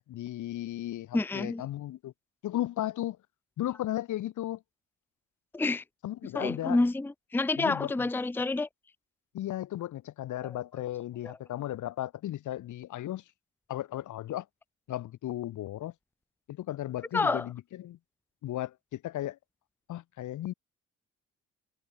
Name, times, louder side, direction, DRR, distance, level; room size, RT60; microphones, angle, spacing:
voice 1, 0.0-2.1 2.4-3.2 3.6-4.6 6.0-6.8 7.6-8.1 9.3-13.2 13.7-14.5 14.9-15.9 16.5-18.0 18.4-19.4 19.9-20.5, left 13 dB, 75° left, 2.2 m, -35 dB
voice 2, 1.1-1.6 5.5-5.8 6.3-8.7 17.1-17.5, left 3 dB, 5° left, 0.6 m, -28 dB
cardioid pair, 90°, 30 cm